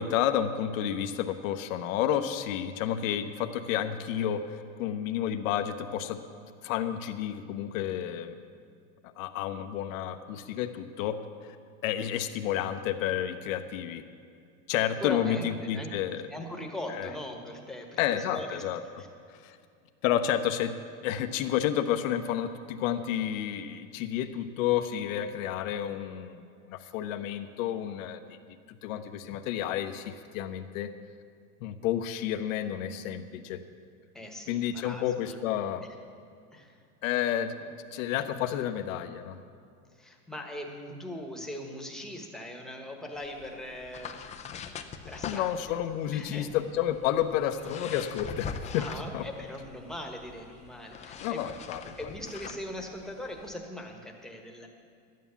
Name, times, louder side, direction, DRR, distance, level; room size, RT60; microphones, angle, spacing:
voice 1, 0.0-6.2 6.6-8.4 9.2-11.2 11.8-14.0 14.7-16.3 16.9-17.1 18.0-18.8 19.4-19.6 20.0-20.7 21.0-28.2 28.8-30.9 31.6-33.6 34.5-35.9 37.0-39.4 45.2-48.9 49.1-49.2 51.2-51.9, left 10 dB, 70° left, 8 dB, 0.9 m, -30 dB
voice 2, 15.0-15.5 15.7-15.9 16.3-18.6 19.0-19.1 34.1-35.4 36.5-36.8 40.0-44.2 45.1-45.5 46.1-46.5 48.8-51.5 52.0-54.7, left 1 dB, ahead, 2 dB, 1.3 m, -40 dB
sound 1, 43.1-53.6, left 6 dB, 15° left, 0.4 m, -43 dB
12.0 x 9.4 x 7.1 m, 2.3 s
supercardioid pair, 135°, 41 cm